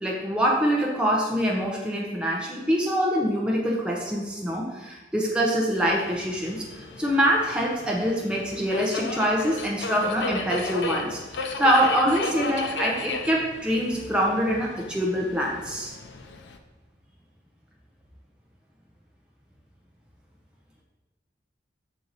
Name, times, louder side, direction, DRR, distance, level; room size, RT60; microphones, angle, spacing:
voice 1, 0.0-15.9, equal, 5° right, -3 dB, 0.7 m, -25 dB
Subway metro underground, 6.0-16.6, left 3 dB, 85° left, 0.6 m, -35 dB
6.4 x 4.6 x 4.0 m, 1.1 s
head